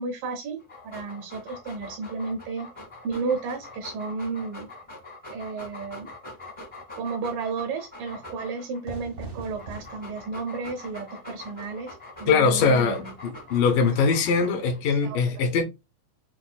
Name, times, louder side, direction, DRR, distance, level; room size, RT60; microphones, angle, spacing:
voice 1, 0.0-2.7 3.0-4.7 5.3-6.1 7.0-13.1 14.9-15.2, right 4 dB, 75° right, 2.2 m, -33 dB
Dog, 0.6-8.8 9.4-14.8, left 2 dB, 55° left, 0.3 m, -43 dB
Fire / Fireworks, 8.8-14.4, right 3 dB, 55° right, 0.7 m, -45 dB
voice 2, 12.3-13.1 13.5-15.6, left 5 dB, 75° left, 2.2 m, -21 dB
7.2 x 2.4 x 2.3 m
omnidirectional pair, 4.1 m